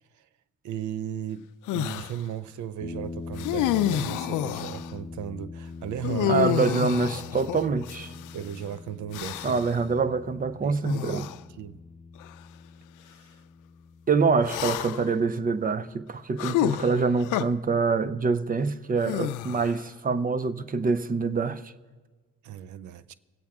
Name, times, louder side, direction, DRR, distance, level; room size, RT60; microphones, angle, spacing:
voice 1, 0.6-6.5 8.3-9.6 10.6-11.2 11.6-11.8 13.1-13.3 22.4-23.1, right 10 dB, 75° right, 0.6 m, -36 dB
sound 1, 1.7-2.2 3.4-4.9 6.0-8.4 9.1-9.7 10.8-11.4 12.2-12.3 14.4-15.2 16.4-17.4 19.0-19.8, left 12 dB, 85° left, 0.5 m, -29 dB
sound 2, 2.8-15.9, left 4 dB, 25° left, 0.7 m, -43 dB
voice 2, 6.3-8.1 9.4-11.3 14.1-21.7, right 4 dB, 30° right, 0.5 m, -25 dB
23.0 x 8.6 x 3.5 m
cardioid pair, 90°, 30 cm